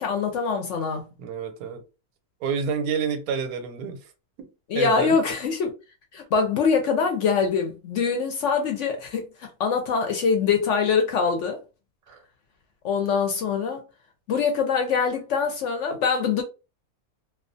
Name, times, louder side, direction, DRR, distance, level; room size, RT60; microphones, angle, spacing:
voice 1, 0.0-1.0 4.7-5.7 6.1-9.3 9.6-11.6 12.8-13.8 14.3-16.4, left 5 dB, 65° left, 0.8 m, -23 dB
voice 2, 1.2-1.8 2.4-4.1 4.4-4.5 4.7-5.2 12.1-12.2, right 6 dB, 80° right, 1.1 m, -29 dB
2.4 x 2.2 x 2.5 m
omnidirectional pair, 1.5 m